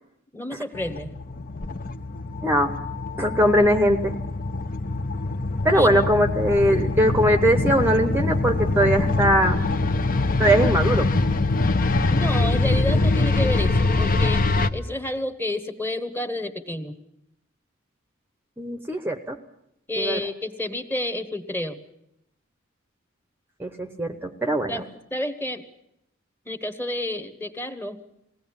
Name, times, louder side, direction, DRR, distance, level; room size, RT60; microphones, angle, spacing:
voice 1, 0.3-1.2 5.7-6.1 12.1-14.4 14.7-17.0 19.9-21.8 24.7-25.7 26.5-28.0, left 1 dB, 10° left, 10 dB, 1.2 m, -30 dB
sound 1, 0.8-14.7, left 2 dB, 45° left, 0.8 m, -24 dB
voice 2, 2.4-2.7 3.2-4.1 5.6-9.6 10.4-11.1 18.6-19.4 20.0-20.2 23.6-24.8, equal, 10° right, 7 dB, 0.8 m, -21 dB
21.0 x 17.5 x 8.8 m, 0.80 s
head